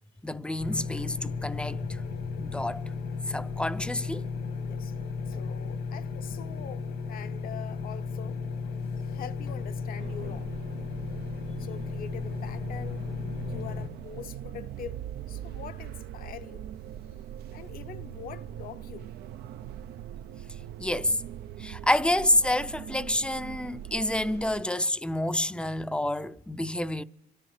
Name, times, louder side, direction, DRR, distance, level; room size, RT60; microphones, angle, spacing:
voice 1, 0.2-2.0 2.4-2.8 3.3-4.3 20.8-21.2 21.6-27.0, left 1 dB, 5° left, 0.5 m, -28 dB
sound 1, 0.6-13.9, left 5 dB, 80° left, 2.0 m, -35 dB
voice 2, 5.3-8.4 9.0-10.5 11.6-13.1 13.4-15.0 15.3-16.6 17.5-19.1, left 9 dB, 60° left, 0.8 m, -44 dB
sound 2, 10.0-24.6, right 11 dB, 70° right, 0.5 m, -41 dB
26.5 x 13.0 x 3.2 m
cardioid pair, 110°, 17 cm